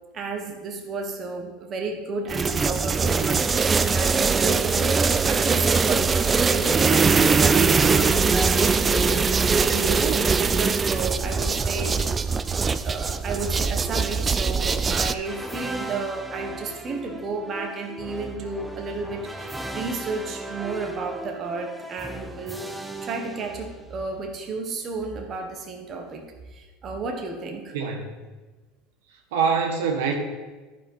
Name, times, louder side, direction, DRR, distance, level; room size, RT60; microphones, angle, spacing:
voice 1, 0.1-12.0 12.8-22.6 23.0-27.7, right 3 dB, 40° right, 3 dB, 1.3 m, -32 dB
sound 1, 2.3-15.1, right 5 dB, 25° right, 0.4 m, -21 dB
sound 2, 15.2-24.1, right 1 dB, 5° right, 0.8 m, -37 dB
voice 2, 27.7-28.0 29.3-30.1, right 5 dB, 80° right, 1 dB, 1.5 m, -24 dB
10.5 x 4.9 x 5.6 m, 1.3 s
supercardioid pair, 100°, 0 cm